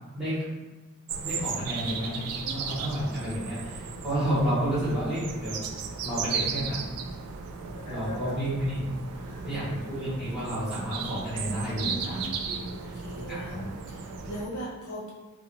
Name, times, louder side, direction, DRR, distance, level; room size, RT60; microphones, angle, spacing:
voice 1, 0.1-0.5 1.1-2.2 2.5-5.6 6.0-6.8 7.8-8.8 9.4-13.6 14.0-14.2, equal, 5° right, -13 dB, 1.3 m, -31 dB
sound 1, 1.1-14.5, right 5 dB, 85° right, 0.3 m, -36 dB
voice 2, 7.7-8.4 9.1-10.0 11.7-15.1, equal, 80° left, -5 dB, 0.7 m, -40 dB
2.6 x 2.5 x 2.6 m, 1.2 s
head